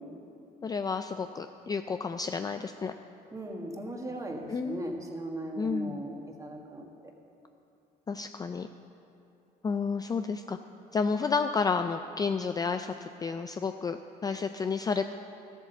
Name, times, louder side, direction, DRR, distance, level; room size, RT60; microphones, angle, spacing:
voice 1, 0.6-2.9 4.5-4.9 5.6-6.0 8.1-8.7 9.6-10.6 10.9-15.1, left 5 dB, 25° left, 7 dB, 0.4 m, -31 dB
voice 2, 3.3-6.8, right 1 dB, 20° right, 2 dB, 1.6 m, -37 dB
13.5 x 8.2 x 6.8 m, 2.7 s
cardioid pair, 110°, 17 cm